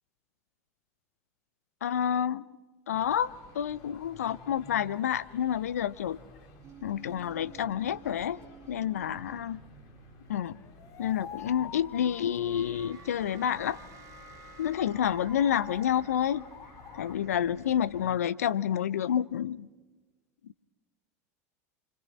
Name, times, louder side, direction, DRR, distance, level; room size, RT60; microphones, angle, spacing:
voice 1, 1.8-2.4 2.9-6.2 6.8-8.4 8.7-9.6 10.3-10.6 11.0-13.8 14.6-16.5 16.9-19.7, left 9 dB, 80° left, 0.6 m, -29 dB
sound 1, 2.9-18.2, left 2 dB, 55° left, 4.7 m, -54 dB
sound 2, 6.6-18.2, right 5 dB, 40° right, 2.9 m, -54 dB
sound 3, 10.3-17.2, left 7 dB, 40° left, 2.4 m, -48 dB
29.0 x 25.0 x 4.3 m
hypercardioid pair, 80°, 8 cm